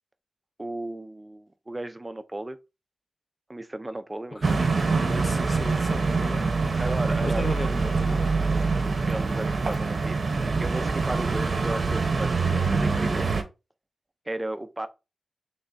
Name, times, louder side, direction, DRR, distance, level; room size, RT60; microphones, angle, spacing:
voice 1, 0.6-2.6 3.5-4.4 6.8-7.5 8.9-10.2 10.6-13.3 14.3-14.9, right 1 dB, 20° right, 0.4 m, -34 dB
voice 2, 4.3-4.7 4.9-6.6 7.2-8.5, left 2 dB, 35° left, 0.5 m, -36 dB
sound 1, 4.4-13.4, right 4 dB, 55° right, 0.7 m, -25 dB
3.4 x 3.3 x 3.9 m
wide cardioid pair, 110°, 0 cm